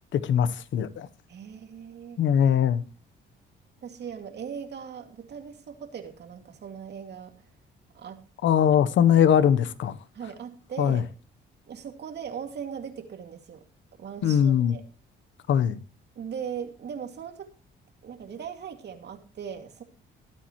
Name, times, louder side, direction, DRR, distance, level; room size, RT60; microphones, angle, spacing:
voice 1, 0.1-1.1 2.2-2.8 8.4-10.0 10.8-11.0 14.2-14.8 15.5-15.8, left 9 dB, 70° left, 1.1 m, -21 dB
voice 2, 1.3-2.2 3.8-7.3 7.9-8.2 10.1-11.0 11.7-13.6 14.0-14.8 16.2-17.5 18.0-19.8, right 7 dB, 60° right, 2.5 m, -39 dB
21.5 x 8.8 x 3.1 m
cardioid pair, 90°, 20 cm